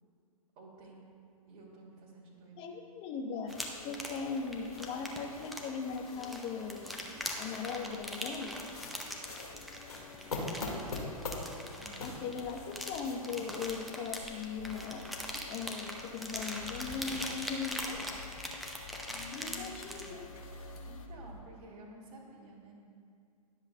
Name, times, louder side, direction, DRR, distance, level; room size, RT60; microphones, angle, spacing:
voice 1, 0.6-1.1 1.5-2.6 10.2-10.7 11.7-12.1 20.8-22.7, right 2 dB, 35° right, -3 dB, 2.4 m, -52 dB
voice 2, 2.6-3.5 3.8-6.9 7.4-8.5 12.0-15.1 15.5-18.2 19.1-20.3, left 5 dB, 30° left, 3 dB, 0.9 m, -39 dB
sound 1, 3.5-21.1, left 6 dB, 60° left, 0.8 m, -54 dB
sound 2, 3.5-20.1, equal, ahead, 0.7 m, -42 dB
sound 3, 3.8-21.4, left 2 dB, 75° left, 1.9 m, -46 dB
20.5 x 7.3 x 2.2 m, 2.4 s
figure-of-eight pair, 110°, 19 cm